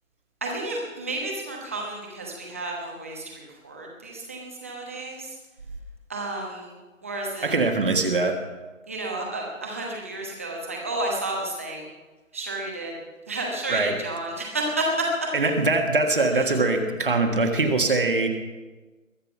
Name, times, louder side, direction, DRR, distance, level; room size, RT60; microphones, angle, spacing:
voice 1, 0.4-5.4 6.1-6.7 7.0-7.5 8.9-11.8 12.3-12.9 13.3-15.1 16.4-16.5, right 2 dB, 10° right, -1 dB, 1.1 m, -31 dB
voice 2, 7.4-8.4 13.7-14.0 15.3-18.3, right 3 dB, 40° right, 5 dB, 1.6 m, -22 dB
21.5 x 7.7 x 5.9 m, 1.2 s
figure-of-eight pair, 160°, 41 cm